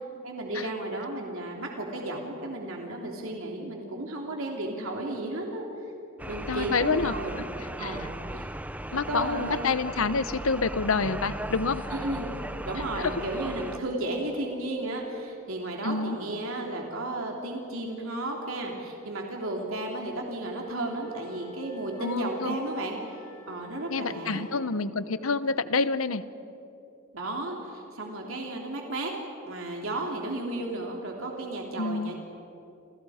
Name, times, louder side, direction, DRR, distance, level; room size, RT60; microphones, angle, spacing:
voice 1, 0.2-5.6 6.3-7.5 7.8-8.5 9.1-9.7 11.9-12.3 12.7-23.2 23.5-24.5 27.1-29.1 29.4-32.2, right 2 dB, 80° right, 0 dB, 3.1 m, -33 dB
sound 1, 6.2-13.8, right 1 dB, 5° right, 0.6 m, -37 dB
voice 2, 6.5-7.4 7.8-8.0 8.9-11.9 13.0-13.1 15.8-16.2 22.0-22.6 23.9-26.2 31.8-32.1, left 4 dB, 85° left, 14 dB, 0.9 m, -28 dB
sound 2, 11.0-14.7, equal, 10° left, 1.2 m, -46 dB
Wind instrument woodwind instrument, 20.5-24.9, left 1 dB, 40° left, 4.7 m, -49 dB
29.0 x 29.0 x 5.0 m, 2.8 s
head